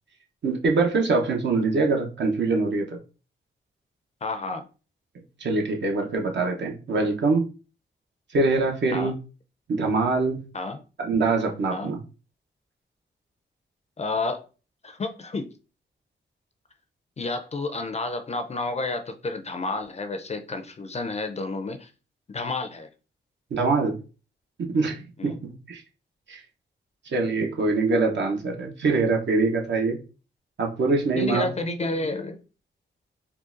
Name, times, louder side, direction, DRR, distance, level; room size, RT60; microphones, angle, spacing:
voice 1, 0.4-3.0 5.4-7.5 8.3-9.1 9.7-10.4 11.0-12.0 23.5-24.0 24.6-25.8 26.3-26.4 27.1-30.0 30.6-31.5, right 3 dB, 65° right, 0.8 m, -24 dB
voice 2, 4.2-4.7 8.9-9.1 10.5-10.8 11.7-11.9 14.0-14.4 14.8-15.5 17.2-21.9 22.3-22.9 25.2-25.4 31.2-32.4, left 3 dB, 35° left, 0.4 m, -30 dB
3.7 x 2.3 x 2.5 m
cardioid pair, 65°, 20 cm